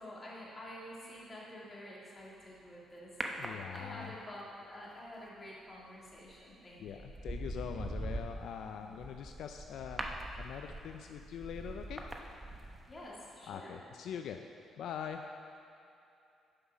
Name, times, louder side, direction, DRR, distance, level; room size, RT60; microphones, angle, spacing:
voice 1, 0.0-7.0 12.9-13.8, left 1 dB, 30° left, -5 dB, 2.5 m, -49 dB
sound 1, 3.2-4.2 6.1-6.4 6.9-13.1 13.3-13.4, right 1 dB, 20° right, 0.9 m, -42 dB
voice 2, 3.4-4.1 6.8-10.1 10.4-12.0 13.5-14.4 14.8-15.2, left 8 dB, 75° left, 5 dB, 0.4 m, -43 dB
10.0 x 5.6 x 5.9 m, 2.7 s
cardioid pair, 90°, 0 cm